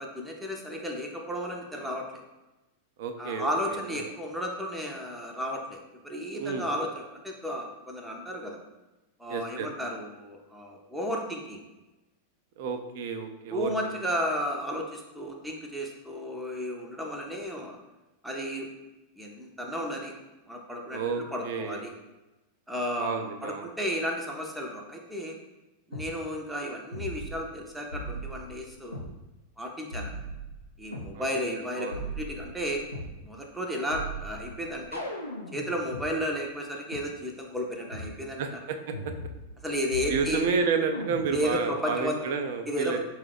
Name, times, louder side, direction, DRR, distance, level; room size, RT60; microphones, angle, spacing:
voice 1, 0.0-2.0 3.2-8.6 9.2-11.6 13.5-17.8 18.2-18.7 19.2-20.2 20.5-21.9 22.7-25.4 25.9-29.1 29.6-30.2 30.8-32.8 33.2-35.0 35.5-38.6 39.6-40.5 41.3-42.2 42.7-43.0, equal, 5° right, 0 dB, 0.6 m, -33 dB
voice 2, 3.0-3.8 6.4-6.7 9.3-9.7 12.6-13.7 20.9-21.9 23.0-23.7 31.1-31.3 31.8-32.0 38.4-38.9 40.1-43.0, right 5 dB, 50° right, 7 dB, 0.4 m, -31 dB
sound 1, 25.9-26.1 26.9-27.6 27.9-29.1 29.9-31.1 31.9-33.1 33.9-36.1 36.9-37.0 37.9-38.1 38.9-39.6 39.9-40.5 40.9-41.5, right 1 dB, 85° left, 0.5 m, -38 dB
4.9 x 2.3 x 3.4 m, 1.1 s
figure-of-eight pair, 90°, 0 cm